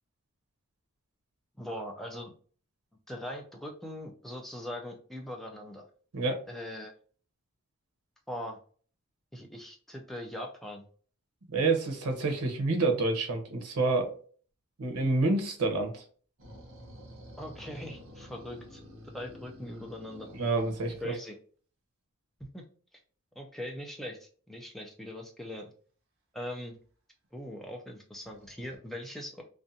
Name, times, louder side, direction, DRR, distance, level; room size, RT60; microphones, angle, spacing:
voice 1, 1.6-2.3 3.1-5.9 6.5-6.9 8.3-8.6 9.3-10.9 17.4-18.8 19.1-20.3 21.0-21.4 22.5-22.6 23.4-25.7 26.3-26.8 27.3-29.4, left 1 dB, ahead, 1 dB, 0.4 m, -41 dB
voice 2, 11.5-14.2 14.8-16.0 20.3-21.1, right 3 dB, 90° right, 4 dB, 0.7 m, -28 dB
sound 1, 16.4-21.0 28.2-28.8, equal, 60° right, 0.8 m, -49 dB
2.5 x 2.2 x 2.6 m, 0.43 s
head